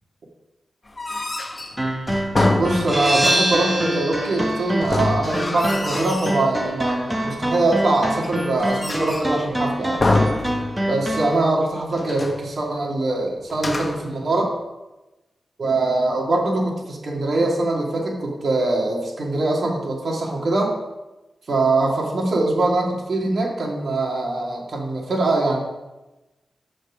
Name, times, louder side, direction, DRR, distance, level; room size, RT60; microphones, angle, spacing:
sound 1, 0.9-3.3 4.8-6.4 6.9-7.5 8.0-9.4 10.0-11.1 11.4-11.5 11.9-12.5 13.5-14.1, left 2 dB, 30° left, 1.1 m, -26 dB
sound 2, 1.8-11.4, right 1 dB, 5° right, 1.3 m, -26 dB
voice 1, 2.6-10.1 10.9-14.5 15.6-20.7 21.5-25.6, right 2 dB, 60° right, -2 dB, 2.6 m, -22 dB
sound 3, 2.9-8.3, right 1 dB, 25° right, 3.1 m, -27 dB
14.5 x 5.3 x 5.1 m, 1.1 s
wide cardioid pair, 110°, 0 cm